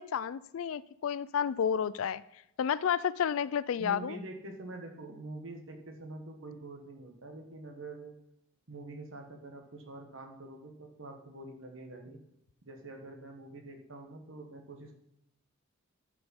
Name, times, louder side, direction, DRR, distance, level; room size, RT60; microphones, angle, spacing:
voice 1, 0.0-2.2 2.6-4.2, left 8 dB, 65° left, 18 dB, 0.3 m, -31 dB
voice 2, 3.8-8.1 8.7-12.2 12.6-14.9, right 2 dB, 60° right, 3 dB, 1.3 m, -45 dB
11.0 x 5.0 x 5.3 m, 0.81 s
head